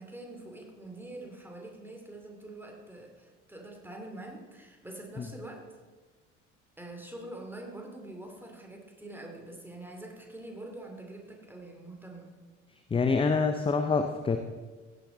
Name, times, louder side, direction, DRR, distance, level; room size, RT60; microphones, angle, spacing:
voice 1, 0.0-5.7 6.8-12.3, right 2 dB, 5° right, 2 dB, 2.7 m, -45 dB
voice 2, 12.9-14.4, left 4 dB, 15° left, 7 dB, 0.7 m, -26 dB
16.0 x 9.4 x 3.9 m, 1.3 s
figure-of-eight pair, 60°, 37 cm